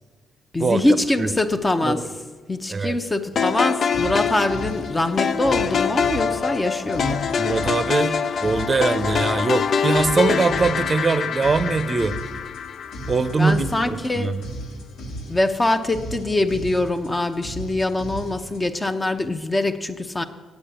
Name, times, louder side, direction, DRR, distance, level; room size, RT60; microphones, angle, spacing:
voice 1, 0.5-2.0 2.5-7.3 13.4-14.4 15.3-20.2, left 2 dB, 20° left, 7 dB, 0.8 m, -23 dB
sound 1, 3.3-18.7, right 1 dB, 90° left, 2.1 m, -37 dB
sound 2, 3.4-13.6, left 6 dB, 55° left, 0.5 m, -25 dB
voice 2, 7.1-8.2 8.4-12.2 13.1-14.4, right 4 dB, 30° right, 12 dB, 0.7 m, -22 dB
8.5 x 8.5 x 9.0 m, 1.4 s
cardioid pair, 90°, 0 cm